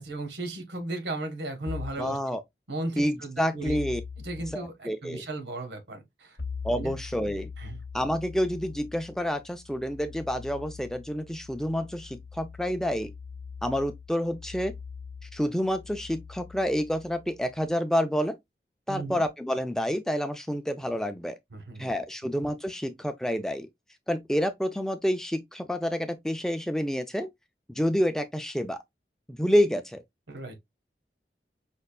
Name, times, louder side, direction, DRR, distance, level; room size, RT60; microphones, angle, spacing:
voice 1, 0.0-2.2 2.7-3.8 4.2-6.4 6.7-6.9 7.6-7.8 18.9-19.2 21.5-21.9 30.3-30.6, right 2 dB, 90° right, 1.0 m, -36 dB
sound 1, 1.7-2.1 3.7-4.6 6.4-17.7, left 5 dB, 65° left, 0.6 m, -42 dB
voice 2, 2.0-2.4 3.0-4.0 4.5-5.2 6.6-7.5 7.9-13.1 13.6-14.7 15.3-18.4 18.9-21.4 21.8-23.7 24.1-27.3 27.7-28.8 29.3-30.0, equal, 5° left, 0.3 m, -28 dB
5.2 x 2.4 x 2.2 m
head